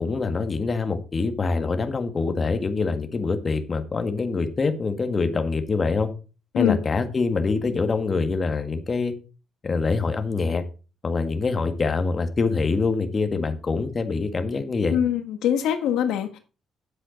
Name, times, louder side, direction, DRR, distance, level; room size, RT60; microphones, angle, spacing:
voice 1, 0.0-6.1 6.5-9.1 9.6-10.6 11.0-15.0, left 4 dB, 35° left, 1.6 m, -25 dB
voice 2, 14.9-16.4, left 10 dB, 85° left, 1.4 m, -23 dB
9.3 x 7.8 x 5.2 m
cardioid pair, 95°, 0 cm